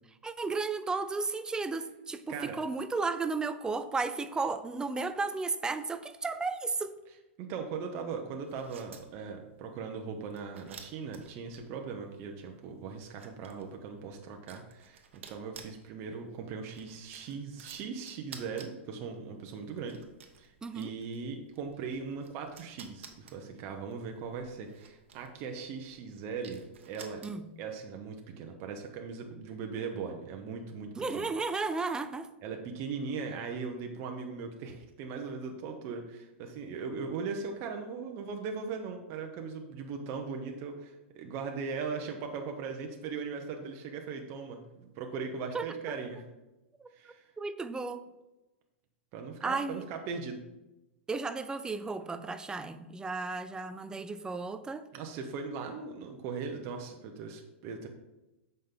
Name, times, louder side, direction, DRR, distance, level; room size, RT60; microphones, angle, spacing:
voice 1, 0.2-7.0 20.6-20.9 27.2-27.4 31.0-32.3 45.5-46.0 46.8-48.0 49.4-49.8 51.1-54.9, right 4 dB, 10° right, 12 dB, 0.5 m, -34 dB
voice 2, 7.4-15.0 15.3-20.0 20.4-27.2 27.6-31.3 32.4-46.2 46.9-47.3 49.1-50.4 54.9-57.9, right 5 dB, 45° right, 3 dB, 0.9 m, -39 dB
sound 1, 8.4-27.7, right 6 dB, 80° right, 1.0 m, -54 dB
7.7 x 5.3 x 3.9 m, 1.0 s
hypercardioid pair, 120°, 7 cm